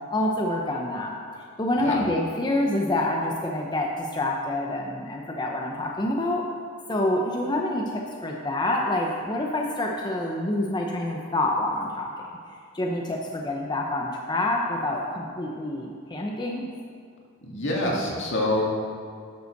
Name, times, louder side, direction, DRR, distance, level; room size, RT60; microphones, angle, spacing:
voice 1, 0.1-1.1 1.6-6.4 6.9-12.1 12.7-16.6, left 1 dB, 20° left, -1 dB, 0.7 m, -27 dB
voice 2, 17.4-18.6, left 1 dB, 65° left, -2 dB, 2.0 m, -26 dB
11.0 x 5.5 x 6.5 m, 2.3 s
head